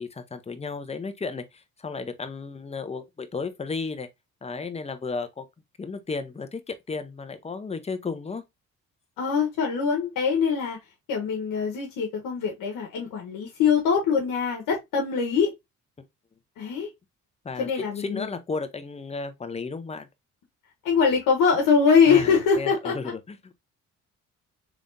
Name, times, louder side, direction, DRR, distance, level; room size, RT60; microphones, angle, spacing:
voice 1, 0.0-4.1 4.4-5.5 5.8-8.4 17.4-20.1 22.1-23.5, left 4 dB, 20° left, 0.7 m, -34 dB
voice 2, 9.2-10.8 11.1-15.5 16.6-16.9 17.6-18.3 20.8-23.0, left 6 dB, 80° left, 1.1 m, -23 dB
3.6 x 3.5 x 2.6 m
supercardioid pair, 70°, 33 cm